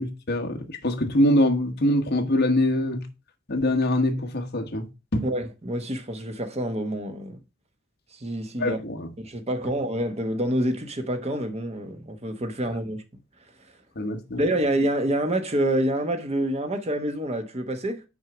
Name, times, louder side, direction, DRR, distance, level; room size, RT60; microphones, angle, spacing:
voice 1, 0.0-3.0 3.5-4.9 5.1-5.2 8.6-9.1 14.0-14.4, left 1 dB, 50° left, 1.2 m, -24 dB
voice 2, 5.2-7.4 8.2-8.8 9.2-13.0 14.4-18.0, right 1 dB, 30° right, 1.0 m, -27 dB
6.1 x 4.6 x 5.9 m
head